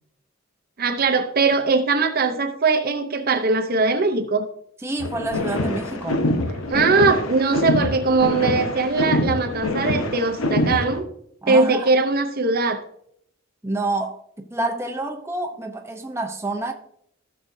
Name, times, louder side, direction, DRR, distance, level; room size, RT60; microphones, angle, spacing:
voice 1, 0.8-4.5 6.7-11.1 11.5-12.8, right 3 dB, 45° right, 0.7 m, -20 dB
voice 2, 4.8-6.2 11.4-11.9 13.6-16.7, right 2 dB, 15° right, 0.8 m, -28 dB
sound 1, 5.0-11.0, left 1 dB, 80° left, 1.1 m, -25 dB
15.5 x 6.6 x 2.7 m
head